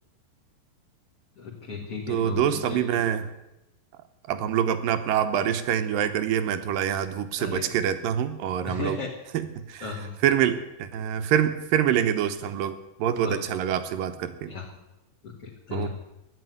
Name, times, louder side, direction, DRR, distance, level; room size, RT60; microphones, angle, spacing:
voice 1, 1.4-3.0 7.4-7.7 8.6-9.1 9.8-10.2 13.2-13.3 14.5-14.8 15.2-15.9, left 4 dB, 45° left, -3 dB, 2.8 m, -35 dB
voice 2, 2.1-3.3 4.3-9.0 9.3-9.9 10.2-14.5 15.7-15.9, right 9 dB, 75° right, 10 dB, 2.7 m, -25 dB
14.0 x 10.5 x 9.4 m, 0.93 s
omnidirectional pair, 4.1 m